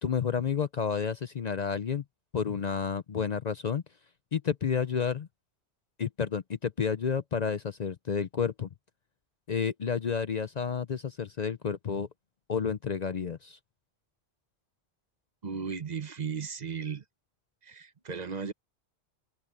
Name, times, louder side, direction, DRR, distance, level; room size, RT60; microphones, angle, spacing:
voice 1, 0.0-2.0 2.3-3.8 4.3-5.3 6.0-8.7 9.5-12.1 12.5-13.6, left 6 dB, 45° left, 0.6 m, -30 dB
voice 2, 15.4-17.0 17.6-18.5, right 6 dB, 40° right, 1.1 m, -35 dB
omnidirectional pair, 1.1 m